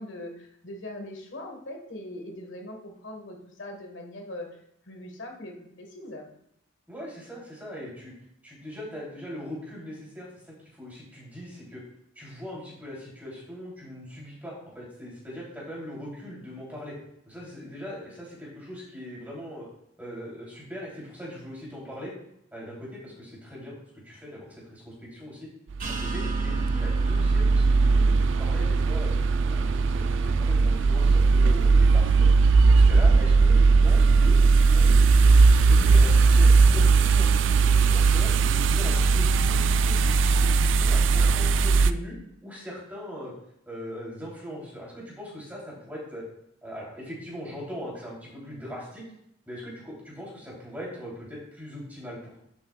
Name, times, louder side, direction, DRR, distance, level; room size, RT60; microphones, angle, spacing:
voice 1, 0.0-4.5 4.8-6.3, left 1 dB, 65° left, 2 dB, 1.5 m, -41 dB
voice 2, 6.9-8.1 8.4-11.8 12.1-16.9 17.3-19.7 20.0-22.1 22.5-23.7 24.0-25.5 25.8-29.1 29.5-32.1 32.6-34.4 34.7-42.1 42.4-43.3 43.6-46.2 46.6-49.0 49.4-52.4, equal, 10° right, -5 dB, 3.2 m, -40 dB
sound 1, 25.7-41.9, right 4 dB, 60° right, 0.3 m, -19 dB
sound 2, 25.8-31.2, right 3 dB, 40° right, 1.1 m, -39 dB
11.5 x 7.1 x 2.4 m, 0.76 s
head